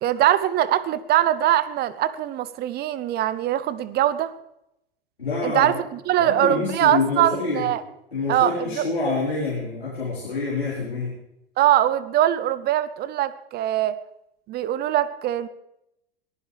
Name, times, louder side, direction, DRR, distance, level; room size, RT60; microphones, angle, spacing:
voice 1, 0.0-4.3 5.4-7.8 8.3-8.9 11.6-14.0 14.5-15.5, right 12 dB, 30° right, 15 dB, 0.8 m, -22 dB
voice 2, 5.2-5.8 6.2-7.7 8.1-11.1, left 3 dB, 90° left, -6 dB, 4.4 m, -27 dB
23.0 x 15.0 x 3.4 m, 0.85 s
figure-of-eight pair, 95°, 30 cm